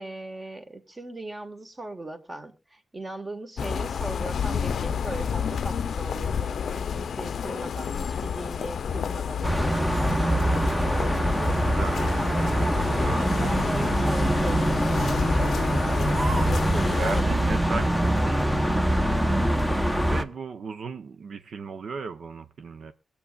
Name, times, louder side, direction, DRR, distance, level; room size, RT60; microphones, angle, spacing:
voice 1, 0.0-11.4 12.0-14.9 15.3-17.3, right 2 dB, 20° right, 1.5 m, -39 dB
sound 1, 3.6-17.2, left 7 dB, 90° left, 0.5 m, -30 dB
sound 2, 9.4-20.2, right 1 dB, 5° right, 0.8 m, -24 dB
sound 3, 9.9-11.0 11.5-11.7 12.2-12.7 13.2-13.7 14.0-14.4 14.9-15.4 16.1-16.7, right 3 dB, 40° right, 2.2 m, -39 dB
voice 2, 11.4-13.3 16.8-22.9, right 5 dB, 70° right, 0.7 m, -37 dB
24.5 x 8.5 x 2.3 m
wide cardioid pair, 175°, 0 cm